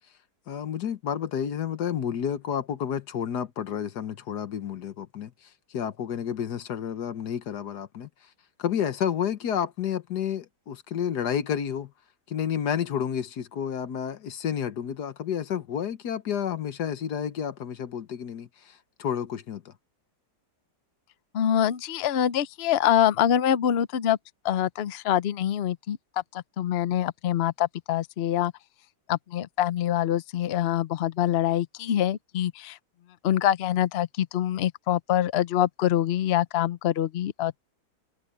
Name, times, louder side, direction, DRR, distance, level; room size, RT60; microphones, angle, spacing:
voice 1, 0.5-5.3 5.7-8.1 8.6-11.9 12.3-19.7, left 8 dB, 65° left, 1.6 m, -30 dB
voice 2, 21.3-24.2 24.4-26.0 26.3-28.5 29.1-32.8 33.2-37.7, left 11 dB, 80° left, 0.5 m, -25 dB
omnidirectional pair, 1.9 m